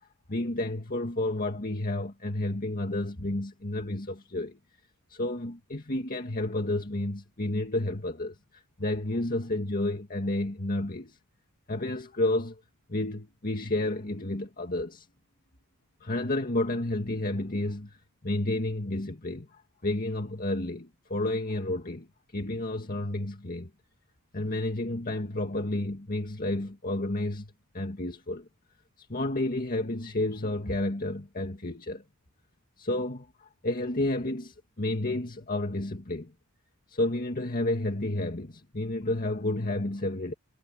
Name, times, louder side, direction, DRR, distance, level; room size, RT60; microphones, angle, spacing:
voice 1, 0.3-4.6 5.1-11.2 11.7-12.6 12.9-15.1 16.0-18.0 18.2-22.1 22.3-23.7 24.3-28.5 29.0-32.0 32.8-36.3 36.9-40.3, left 1 dB, 40° left, 2.0 m, -31 dB
head